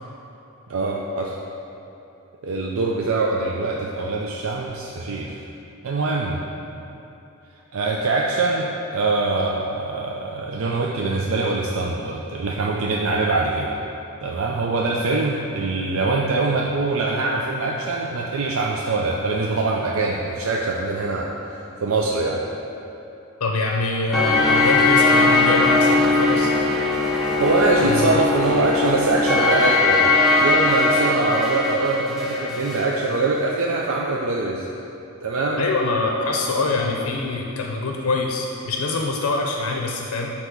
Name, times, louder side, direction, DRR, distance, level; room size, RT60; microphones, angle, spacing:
voice 1, 0.7-1.4 2.4-5.4 5.8-6.4 7.7-13.8 14.2-22.4 27.1-34.7 35.2-35.7, right 3 dB, 70° right, -2 dB, 0.5 m, -23 dB
voice 2, 23.4-26.5 27.8-28.2 35.6-40.3, left 3 dB, 85° left, 1 dB, 0.5 m, -24 dB
sound 1, 24.1-32.9, left 3 dB, ahead, 0.6 m, -19 dB
8.0 x 2.9 x 6.0 m, 2.8 s
head